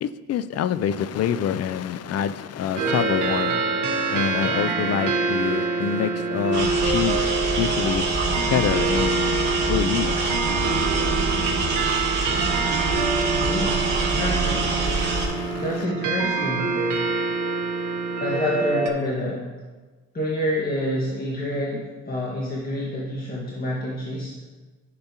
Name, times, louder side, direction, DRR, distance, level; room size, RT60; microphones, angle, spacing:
voice 1, 0.0-3.5 4.1-7.2 7.6-8.0 8.5-10.2 14.8-15.9, left 9 dB, 55° left, 14 dB, 0.5 m, -26 dB
sound 1, 2.8-18.9, right 4 dB, 80° right, 1.1 m, -25 dB
sound 2, 6.5-15.3, right 3 dB, 35° right, 2.7 m, -25 dB
voice 2, 13.4-13.8 14.1-14.8 15.6-16.7 17.8-17.9 18.2-19.4 20.1-24.3, left 1 dB, 30° left, -5 dB, 1.6 m, -28 dB
10.5 x 6.9 x 2.9 m, 1.3 s
cardioid pair, 90°, 30 cm